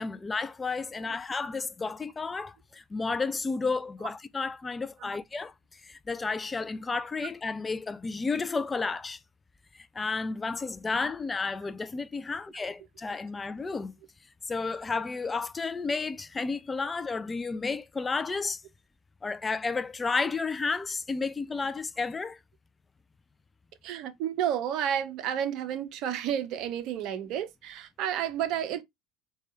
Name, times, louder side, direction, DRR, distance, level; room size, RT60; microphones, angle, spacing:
voice 1, 0.0-9.2 9.7-13.9 14.5-18.6 19.2-22.4, left 4 dB, 20° left, 0.3 m, -32 dB
voice 2, 23.8-28.8, right 10 dB, 55° right, 0.6 m, -31 dB
4.5 x 2.3 x 2.8 m
figure-of-eight pair, 70°, 0 cm